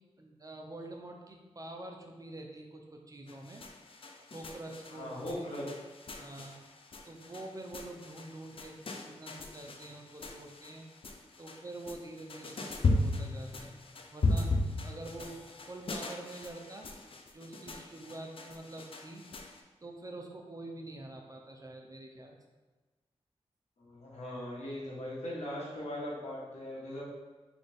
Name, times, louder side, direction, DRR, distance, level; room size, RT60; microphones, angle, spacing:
voice 1, 0.2-3.6 4.3-5.5 6.2-6.5 7.0-10.8 11.4-13.8 14.1-14.5 14.8-15.4 15.7-16.9 17.3-19.5 19.8-22.4, right 2 dB, 30° right, 1 dB, 0.5 m, -46 dB
sound 1, 3.3-19.6, left 2 dB, 50° left, 0.4 m, -37 dB
voice 2, 4.9-5.6 23.8-27.0, left 1 dB, 80° left, -6 dB, 1.3 m, -39 dB
4.0 x 2.4 x 3.4 m, 1.2 s
cardioid pair, 55°, 12 cm